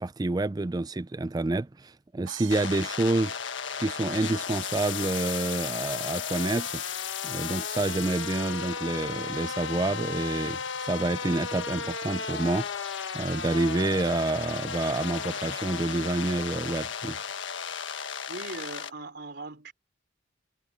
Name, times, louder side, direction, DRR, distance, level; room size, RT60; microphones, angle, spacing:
voice 1, 0.0-3.4 3.8-6.8 7.2-10.6 10.9-12.7 13.1-17.2, right 2 dB, 20° right, 0.4 m, -28 dB
sound 1, 2.3-4.2, right 10 dB, 90° right, 2.2 m, -45 dB
sound 2, 2.5-18.9, left 6 dB, 75° left, 1.5 m, -34 dB
voice 2, 18.3-19.7, right 2 dB, 60° right, 4.1 m, -39 dB
head